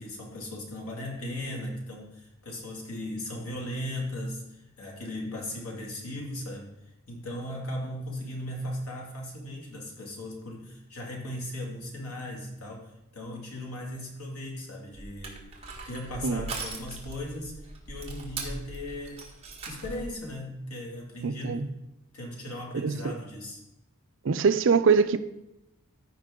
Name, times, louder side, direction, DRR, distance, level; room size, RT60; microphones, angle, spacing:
voice 1, 0.0-6.7 7.1-15.5 15.9-17.6 17.9-19.2 19.6-21.7 22.1-23.6, left 1 dB, 85° left, 0 dB, 2.3 m, -37 dB
Crushing, 14.9-20.2, right 3 dB, 30° right, 1.5 m, -40 dB
voice 2, 21.2-21.7 22.7-23.2 24.2-25.2, right 5 dB, 60° right, 12 dB, 0.5 m, -23 dB
14.0 x 5.2 x 3.7 m, 0.91 s
head